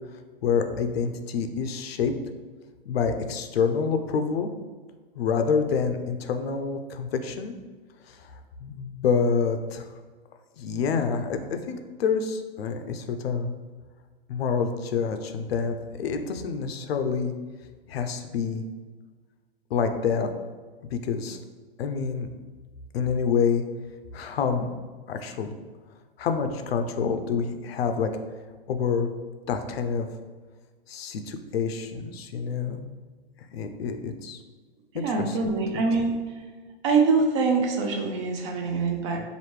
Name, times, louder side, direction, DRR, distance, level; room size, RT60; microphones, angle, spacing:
voice 1, 0.4-2.1 2.9-4.5 5.1-7.6 8.1-8.2 8.6-9.9 10.6-13.5 14.3-17.3 17.9-18.6 19.7-20.3 20.9-21.4 21.8-22.3 22.9-23.6 24.1-24.7 25.1-25.6 26.2-28.1 28.7-29.1 29.5-30.1 30.9-32.8 33.5-34.4 34.9-35.4 35.7-35.8, left 6 dB, 75° left, 7 dB, 0.6 m, -27 dB
voice 2, 35.0-36.2 36.8-39.2, right 4 dB, 30° right, 3 dB, 0.4 m, -24 dB
5.0 x 2.6 x 3.1 m, 1.4 s
hypercardioid pair, 145°, 30 cm